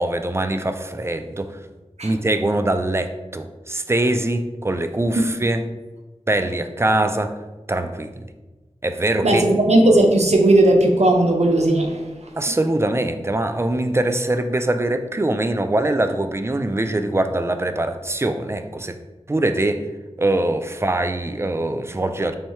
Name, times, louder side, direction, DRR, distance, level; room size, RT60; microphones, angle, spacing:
voice 1, 0.0-1.6 2.0-5.6 6.3-7.3 7.7-8.2 8.8-9.5 12.3-19.0 19.3-19.8 20.2-22.4, right 1 dB, 25° right, 8 dB, 0.3 m, -23 dB
voice 2, 9.2-12.1, right 1 dB, 75° right, 2 dB, 0.6 m, -16 dB
3.3 x 2.7 x 4.2 m, 1.2 s
wide cardioid pair, 40°, 11 cm